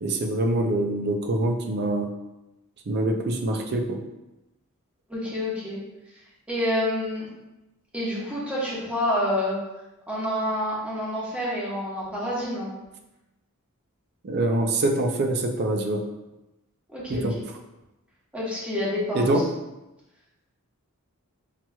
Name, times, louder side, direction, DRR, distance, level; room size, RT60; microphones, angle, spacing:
voice 1, 0.0-2.1 2.9-4.0 14.2-16.0 17.1-17.3 19.1-19.5, right 1 dB, 50° right, 3 dB, 0.5 m, -24 dB
voice 2, 5.1-5.8 6.5-7.3 7.9-9.6 10.1-12.7 16.9-17.2 18.3-19.2, left 1 dB, 5° right, -7 dB, 1.1 m, -28 dB
5.7 x 3.0 x 2.2 m, 0.98 s
head